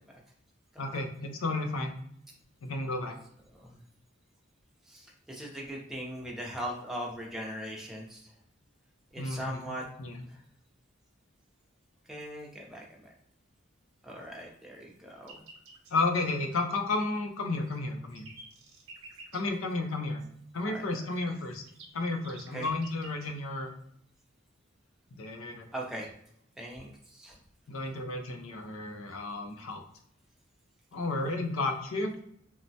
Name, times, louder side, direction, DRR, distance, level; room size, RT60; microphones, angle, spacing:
voice 1, 0.8-1.9 2.6-3.2 9.2-9.7 10.0-10.2 15.9-18.3 19.3-20.2 20.5-21.6 21.9-23.7 25.2-25.7 27.7-29.8 30.9-32.2, left 2 dB, 75° left, 5 dB, 0.5 m, -32 dB
voice 2, 4.9-8.2 9.1-9.8 12.1-13.1 14.0-15.4 20.6-20.8 22.5-22.7 25.7-26.1 26.6-27.4, equal, ahead, -2 dB, 0.5 m, -40 dB
sound 1, 15.2-16.0 17.3-19.4 21.2-23.3, right 3 dB, 75° right, 0.8 m, -51 dB
3.1 x 2.0 x 2.6 m, 0.71 s
head